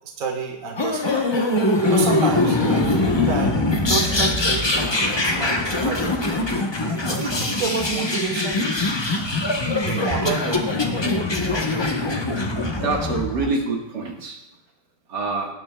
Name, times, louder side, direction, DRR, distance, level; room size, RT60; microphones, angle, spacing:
voice 1, 0.0-1.3 1.9-6.2 7.1-8.7 9.9-10.9 13.5-13.6, right 5 dB, 50° right, 2 dB, 1.5 m, -30 dB
sound 1, 0.8-13.5, left 2 dB, 25° left, 0.6 m, -22 dB
voice 2, 12.8-14.4 15.1-15.5, right 3 dB, 70° right, 0 dB, 2.1 m, -26 dB
18.0 x 9.3 x 2.3 m, 0.92 s
omnidirectional pair, 1.9 m